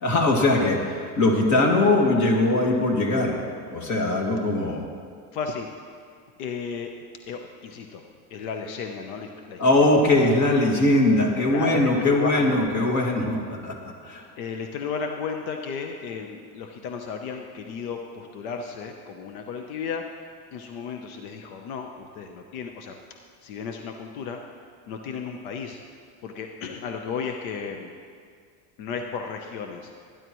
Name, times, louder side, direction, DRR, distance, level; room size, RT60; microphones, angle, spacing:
voice 1, 0.0-3.4 3.7-4.8 9.6-14.2, left 2 dB, 45° left, 0 dB, 2.5 m, -21 dB
voice 2, 5.3-5.7 6.4-6.9 7.3-8.0 8.3-10.3 11.5-12.6 14.4-20.0 20.5-22.9 23.4-24.4 24.9-25.8 26.2-27.9 28.8-29.9, left 5 dB, 90° left, 4 dB, 1.0 m, -34 dB
19.5 x 10.5 x 3.1 m, 2.1 s
supercardioid pair, 125°, 41 cm